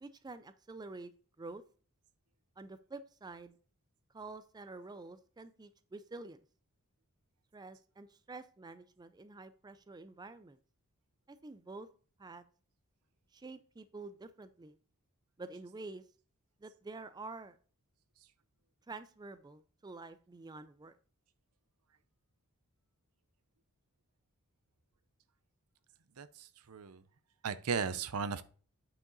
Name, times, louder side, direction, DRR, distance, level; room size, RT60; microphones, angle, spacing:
voice 1, 0.0-1.1 1.4-1.6 2.6-3.6 4.1-6.4 7.5-10.6 11.3-11.9 12.2-12.4 13.3-14.8 15.4-16.0 16.6-17.6 18.9-21.0, right 3 dB, 20° right, 0.4 m, -48 dB
voice 2, 26.2-27.0 27.4-28.4, right 6 dB, 80° right, 0.6 m, -36 dB
8.8 x 4.9 x 3.9 m
head